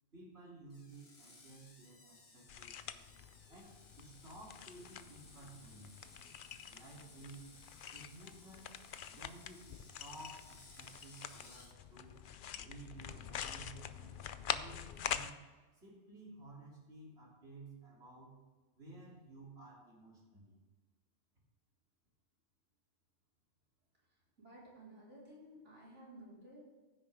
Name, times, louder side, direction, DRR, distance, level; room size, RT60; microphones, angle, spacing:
voice 1, 0.1-3.1 3.5-5.9 6.7-7.5 7.9-8.7 9.1-12.1 12.6-15.4 15.8-18.3 18.7-20.6, right 2 dB, 65° right, -4 dB, 3.4 m, -55 dB
Screech, 0.7-11.7, left 3 dB, 30° left, 1.2 m, -60 dB
sound 1, 2.5-15.3, left 8 dB, 60° left, 0.6 m, -45 dB
voice 2, 24.4-26.6, right 1 dB, 90° right, -7 dB, 4.7 m, -55 dB
15.5 x 9.6 x 3.5 m, 1.3 s
omnidirectional pair, 1.2 m